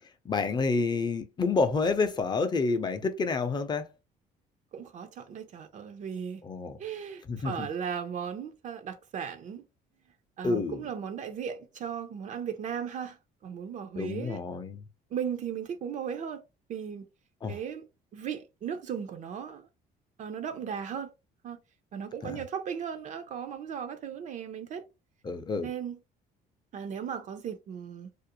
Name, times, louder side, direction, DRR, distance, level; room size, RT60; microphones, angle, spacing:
voice 1, 0.2-3.8 6.4-6.8 7.3-7.7 10.4-10.8 14.0-14.8 17.4-17.6 22.2-22.4 25.2-25.7, left 4 dB, 25° left, 0.5 m, -29 dB
voice 2, 4.7-6.4 6.8-9.6 10.4-13.2 13.4-14.4 15.1-16.4 16.7-17.1 17.5-17.8 18.1-19.7 20.2-21.1 21.4-21.6 21.9-24.9 25.6-26.0 26.7-28.1, right 7 dB, 45° right, 0.4 m, -36 dB
2.4 x 2.0 x 2.8 m
cardioid pair, 110°, 17 cm